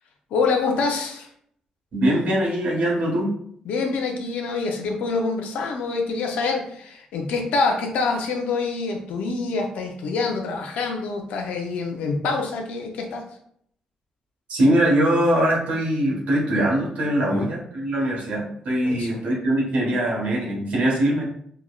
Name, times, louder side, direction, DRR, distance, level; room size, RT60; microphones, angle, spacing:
voice 1, 0.3-1.3 3.7-13.2 17.2-17.5 18.8-19.2, left 4 dB, 85° left, 2 dB, 0.6 m, -26 dB
voice 2, 1.9-3.3 14.5-21.2, right 1 dB, 75° right, -2 dB, 1.1 m, -22 dB
4.8 x 2.1 x 2.3 m, 0.67 s
cardioid pair, 65°, 2 cm